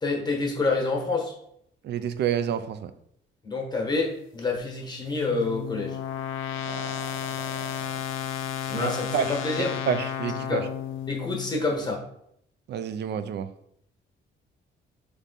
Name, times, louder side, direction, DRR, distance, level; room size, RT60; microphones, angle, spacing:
voice 1, 0.0-1.3 3.4-6.0 8.7-9.8 10.4-10.7 11.1-12.0, left 3 dB, 20° left, 0 dB, 1.3 m, -28 dB
voice 2, 1.8-2.9 6.6-8.0 8.7-9.3 9.9-10.7 12.7-13.5, right 8 dB, 60° right, 11 dB, 0.4 m, -30 dB
sound 1, 4.6-11.7, left 10 dB, 90° left, 0.4 m, -33 dB
3.5 x 3.2 x 4.0 m, 0.72 s
cardioid pair, 90°, 20 cm